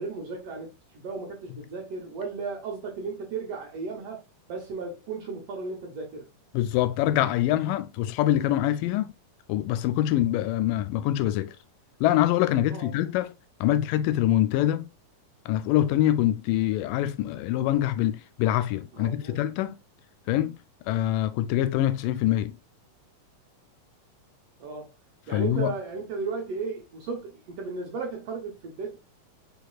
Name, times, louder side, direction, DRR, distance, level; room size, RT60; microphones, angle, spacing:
voice 1, 0.0-4.2 4.5-6.3 12.7-12.9 18.9-19.4 24.6-24.9 25.3-29.0, right 4 dB, 60° right, 1.8 m, -35 dB
voice 2, 6.5-9.1 9.5-11.6 12.0-13.3 13.6-14.9 15.5-19.8 20.3-20.6 20.9-22.6 25.3-25.7, left 13 dB, 85° left, 2.1 m, -24 dB
5.2 x 4.3 x 2.3 m
omnidirectional pair, 3.8 m